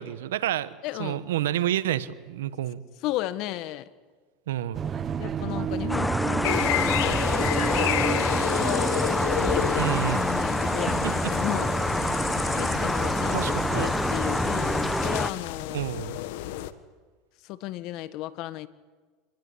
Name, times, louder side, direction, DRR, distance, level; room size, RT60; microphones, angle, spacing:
voice 1, 0.0-2.8 4.5-4.8 9.8-10.3 10.8-11.1 12.7-12.8 13.3-13.9 15.7-16.2, right 12 dB, 90° right, 15 dB, 1.4 m, -29 dB
voice 2, 0.8-1.2 3.0-3.9 5.2-8.9 9.4-11.7 12.4-15.8 17.5-18.7, left 15 dB, 60° left, 14 dB, 1.6 m, -34 dB
sound 1, 4.7-15.2, right 7 dB, 35° right, 1.3 m, -33 dB
sound 2, 5.9-15.3, left 1 dB, 5° left, 1.0 m, -26 dB
sound 3, 6.4-16.7, left 14 dB, 75° left, 1.5 m, -32 dB
26.0 x 21.0 x 9.9 m, 1.4 s
supercardioid pair, 110°, 0 cm